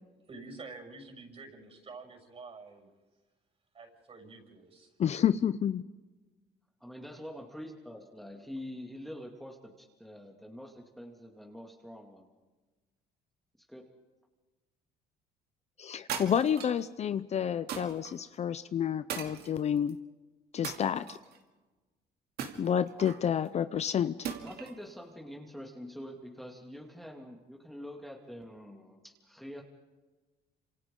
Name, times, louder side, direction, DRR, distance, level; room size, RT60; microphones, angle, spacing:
voice 1, 0.3-2.9 3.7-4.9, right 3 dB, 35° right, 3 dB, 6.3 m, -48 dB
voice 2, 5.0-5.8 15.8-20.0 20.5-21.2 22.6-24.3, left 8 dB, 40° left, 13 dB, 0.6 m, -29 dB
voice 3, 6.8-12.3 13.7-13.9 24.4-29.6, equal, ahead, 0 dB, 2.4 m, -45 dB
sound 1, 16.1-16.8 17.7-18.1 19.1-19.9 20.6-21.4 22.4-23.3 24.2-24.8, right 7 dB, 70° right, 2.7 m, -39 dB
28.0 x 27.0 x 3.8 m, 1.2 s
cardioid pair, 110°, 17 cm